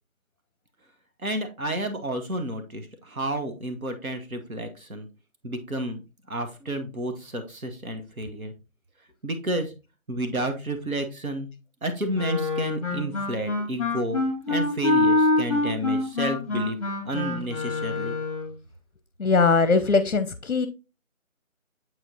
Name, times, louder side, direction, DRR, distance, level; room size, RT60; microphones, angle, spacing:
voice 1, 1.2-5.1 5.4-8.5 9.2-9.7 10.1-11.5 11.8-16.8 17.0-18.2, right 1 dB, 80° right, 8 dB, 1.4 m, -31 dB
Wind instrument woodwind instrument, 12.1-18.5, left 2 dB, 25° left, 2.0 m, -25 dB
voice 2, 19.2-20.7, left 4 dB, 60° left, 12 dB, 0.6 m, -21 dB
7.6 x 4.9 x 2.8 m, 0.30 s
figure-of-eight pair, 175°, 42 cm